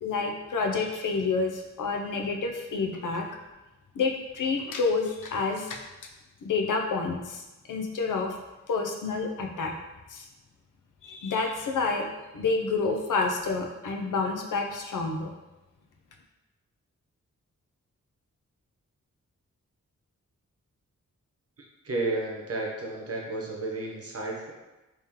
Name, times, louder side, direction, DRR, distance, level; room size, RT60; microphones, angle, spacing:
voice 1, 0.0-3.3 4.0-5.8 6.4-7.4 7.7-8.4 8.7-9.7 10.1-10.3 11.0-12.1 12.3-15.3, left 4 dB, 85° left, 2 dB, 0.6 m, -28 dB
voice 2, 21.6-24.5, right 2 dB, 50° right, -1 dB, 0.8 m, -32 dB
3.6 x 3.0 x 2.9 m, 1.1 s
wide cardioid pair, 115°, 31 cm